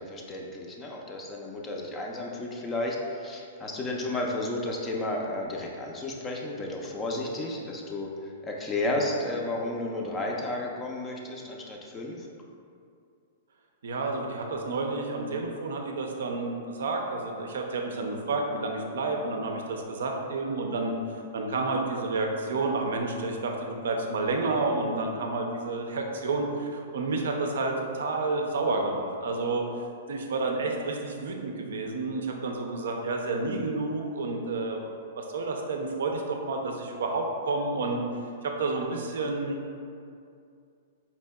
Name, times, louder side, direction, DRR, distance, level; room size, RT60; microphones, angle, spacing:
voice 1, 0.0-12.3, left 2 dB, 20° left, -1 dB, 0.4 m, -32 dB
voice 2, 13.8-38.0 38.4-39.6, right 3 dB, 75° right, 2 dB, 0.4 m, -30 dB
4.2 x 2.6 x 2.2 m, 2.4 s
hypercardioid pair, 125°, 0 cm